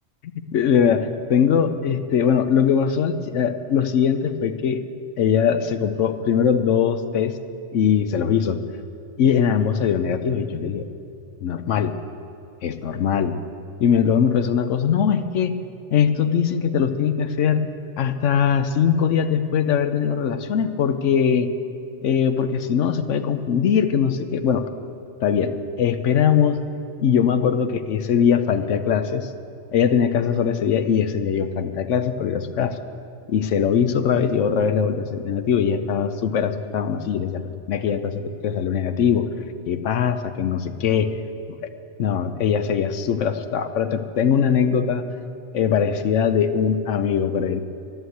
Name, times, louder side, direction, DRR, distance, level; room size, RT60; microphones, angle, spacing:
voice 1, 0.5-4.8 5.2-7.3 7.7-8.6 9.2-10.9 11.4-12.0 12.6-13.4 13.8-15.5 15.9-17.6 18.0-21.5 22.0-24.6 25.2-25.5 25.8-26.6 27.0-29.3 29.7-32.8 33.3-37.4 37.7-39.3 39.7-41.1 42.0-45.0 45.5-47.6, left 7 dB, 90° left, 9 dB, 1.1 m, -21 dB
11.5 x 11.0 x 8.0 m, 2.6 s
omnidirectional pair, 1.2 m